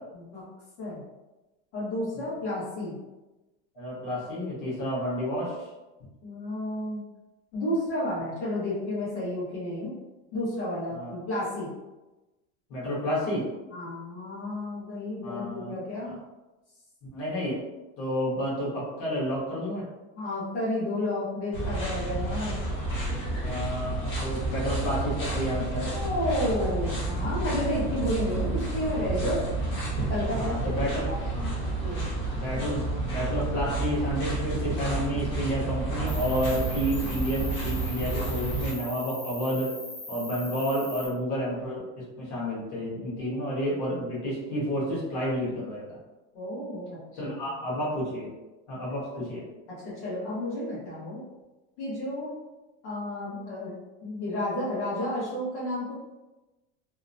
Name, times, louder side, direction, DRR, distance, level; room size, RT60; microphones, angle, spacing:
voice 1, 1.7-3.0 6.2-7.0 7.5-9.9 10.3-11.7 13.7-16.2 20.1-22.6 25.9-29.4 30.0-30.7 31.0-31.2 31.8-32.1 32.5-32.7 43.9-44.1 46.3-47.3 49.2-49.3 49.7-51.2 51.8-52.3 52.8-53.7 54.0-55.9, left 1 dB, 85° left, -8 dB, 1.3 m, -31 dB
voice 2, 3.7-5.7 10.9-11.1 12.7-13.4 15.2-15.7 16.0-16.2 17.1-17.6 18.0-19.9 23.4-25.9 30.3-31.1 31.3-31.6 32.3-32.8 33.1-39.7 40.1-46.0 47.2-48.3 48.7-49.4, equal, 60° left, -7 dB, 1.4 m, -30 dB
sound 1, 21.5-38.7, right 2 dB, 35° left, 0.9 m, -30 dB
Cricket, 36.1-41.1, left 2 dB, 15° left, 0.5 m, -40 dB
2.9 x 2.1 x 2.6 m, 1.1 s
supercardioid pair, 150°, 34 cm